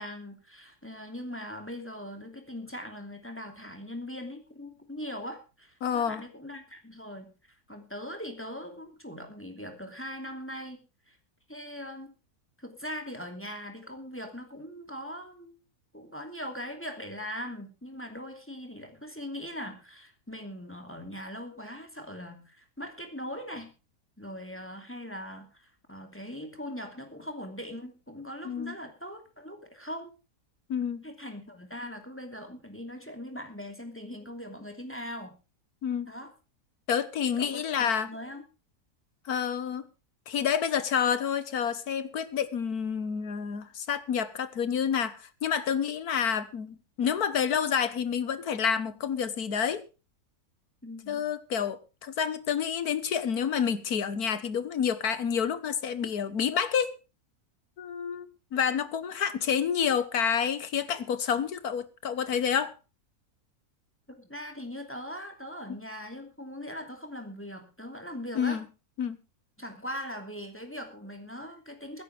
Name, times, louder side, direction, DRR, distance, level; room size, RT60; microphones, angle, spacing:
voice 1, 0.0-7.3 7.7-10.8 11.1-11.2 11.5-12.1 12.6-15.6 15.9-23.7 24.2-30.1 31.0-35.4 36.1-36.3 37.2-38.4 50.8-51.2 64.1-68.6 69.6-72.0, equal, 10° left, 2.8 m, -40 dB
voice 2, 5.8-6.2 28.5-28.8 30.7-31.1 35.8-36.1 36.9-38.1 39.3-39.8 40.3-49.8 51.1-56.9 57.8-62.7 68.4-68.6 69.0-69.2, left 7 dB, 70° left, 1.8 m, -29 dB
22.5 x 10.5 x 3.5 m
omnidirectional pair, 1.6 m